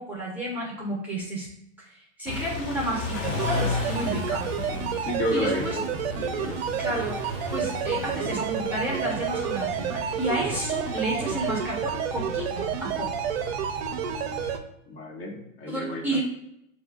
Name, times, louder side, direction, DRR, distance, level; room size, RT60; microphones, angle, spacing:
voice 1, 0.0-1.5 1.9-4.4 5.3-5.8 6.8-7.2 7.5-13.1 15.7-16.2, right 1 dB, 5° right, -4 dB, 0.7 m, -31 dB
Car / Idling / Accelerating revving vroom, 2.3-14.6, left 3 dB, 20° left, 0.4 m, -35 dB
sound 1, 3.2-14.6, right 9 dB, 50° right, 0.5 m, -30 dB
voice 2, 4.7-5.9 6.2-6.8 14.9-16.2, left 1 dB, 50° left, -2 dB, 1.5 m, -32 dB
6.9 x 2.7 x 2.4 m, 0.79 s
hypercardioid pair, 125°, 41 cm